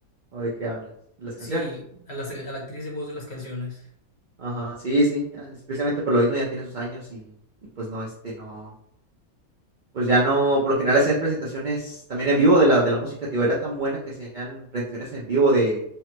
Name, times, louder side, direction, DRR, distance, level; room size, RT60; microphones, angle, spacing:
voice 1, 0.3-0.9 1.2-1.7 4.4-7.2 7.8-8.7 9.9-15.8, right 1 dB, 70° right, -4 dB, 0.4 m, -23 dB
voice 2, 1.4-3.9, left 1 dB, 50° left, -2 dB, 0.9 m, -35 dB
3.3 x 2.1 x 2.9 m, 0.71 s
omnidirectional pair, 1.5 m